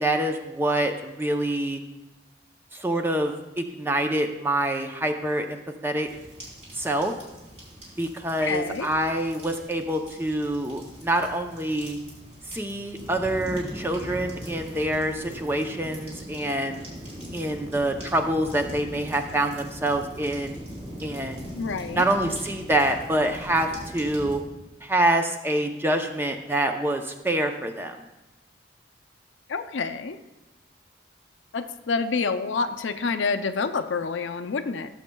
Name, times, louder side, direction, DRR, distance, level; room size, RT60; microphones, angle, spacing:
voice 1, 0.0-1.8 2.7-6.1 6.7-7.1 8.0-12.0 12.5-16.8 17.3-20.6 21.0-21.6 21.9-24.4 24.8-28.0, right 1 dB, 10° right, 4 dB, 0.6 m, -26 dB
sound 1, 6.0-24.3, equal, 35° right, 3.1 m, -41 dB
voice 2, 8.4-8.9 21.6-22.0 29.5-30.2 31.5-34.9, left 4 dB, 80° left, 9 dB, 0.5 m, -28 dB
17.0 x 7.2 x 2.3 m, 1.0 s
head